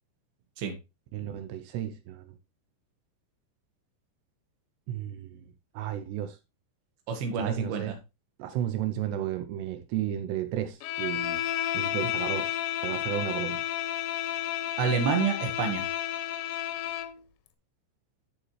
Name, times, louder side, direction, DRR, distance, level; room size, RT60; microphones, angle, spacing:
voice 1, 1.1-2.4 4.9-5.4 5.7-6.4 7.4-8.0 8.4-11.4 11.7-12.6 12.8-13.6, right 11 dB, 80° right, 2.4 m, -33 dB
voice 2, 7.1-7.9 14.8-15.8, right 6 dB, 60° right, 3.3 m, -28 dB
Bowed string instrument, 10.8-17.2, left 11 dB, 85° left, 3.5 m, -31 dB
14.0 x 5.2 x 3.2 m
omnidirectional pair, 5.8 m